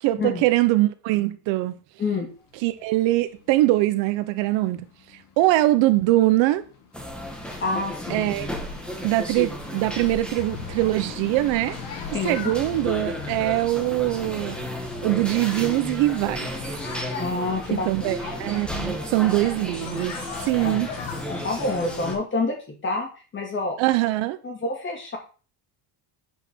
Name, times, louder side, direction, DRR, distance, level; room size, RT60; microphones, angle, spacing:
voice 1, 0.0-1.7 2.6-4.9 5.4-6.6 8.1-8.5 9.0-11.8 12.1-14.6 15.0-16.5 17.9-20.1 20.4-20.9 23.8-24.4, right 17 dB, 65° right, 0.9 m, -22 dB
sound 1, 2.3-21.2, left 8 dB, 40° left, 2.1 m, -46 dB
sound 2, 6.9-22.1, equal, ahead, 1.5 m, -34 dB
sound 3, 7.1-22.1, left 6 dB, 75° left, 2.6 m, -39 dB
voice 2, 7.6-8.3 12.1-12.4 17.2-18.1 20.6-20.8 21.3-22.6 22.8-23.1 23.3-23.8 24.4-25.2, left 3 dB, 25° left, 2.4 m, -27 dB
8.6 x 5.0 x 6.2 m
cardioid pair, 165°, 48 cm